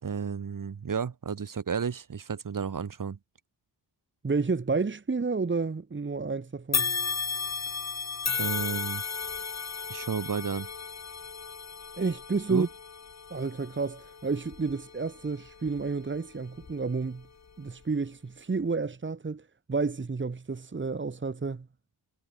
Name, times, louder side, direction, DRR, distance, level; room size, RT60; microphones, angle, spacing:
voice 1, 0.0-3.2 8.4-9.0 9.9-10.7 12.5-12.7, right 6 dB, 50° right, 3.4 m, -32 dB
voice 2, 4.2-6.9 12.0-12.7 13.3-17.3 17.6-21.7, right 4 dB, 30° right, 2.2 m, -30 dB
sound 1, 6.7-16.0 16.6-16.7 17.7-17.8, left 5 dB, 40° left, 2.6 m, -34 dB
wide cardioid pair, 115°, 41 cm